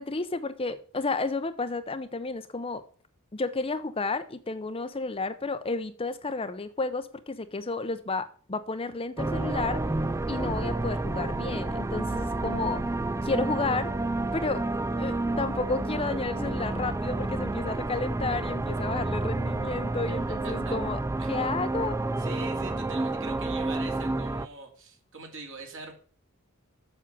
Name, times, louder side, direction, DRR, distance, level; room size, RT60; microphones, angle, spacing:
voice 1, 0.0-2.8 3.3-9.8 10.3-12.8 13.2-13.9 14.3-14.6 15.0-21.0 21.3-22.0, left 3 dB, 25° left, 0.6 m, -31 dB
sound 1, 9.2-24.5, right 2 dB, 15° right, 0.3 m, -30 dB
voice 2, 20.2-20.7 21.2-21.5 22.2-25.9, right 3 dB, 60° right, 2.7 m, -43 dB
7.5 x 7.3 x 5.4 m
head